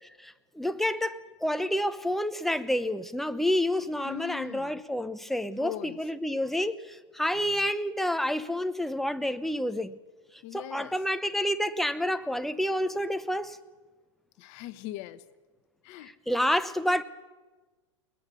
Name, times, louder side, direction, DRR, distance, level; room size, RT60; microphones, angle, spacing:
voice 1, 0.0-10.0 10.5-13.6 16.3-17.0, equal, ahead, 11 dB, 0.8 m, -29 dB
voice 2, 4.0-4.8 5.6-6.0 10.4-10.9 14.4-15.2 15.8-16.1, left 15 dB, 50° left, 10 dB, 1.2 m, -40 dB
21.5 x 19.5 x 6.9 m, 1.3 s
supercardioid pair, 135°, 16 cm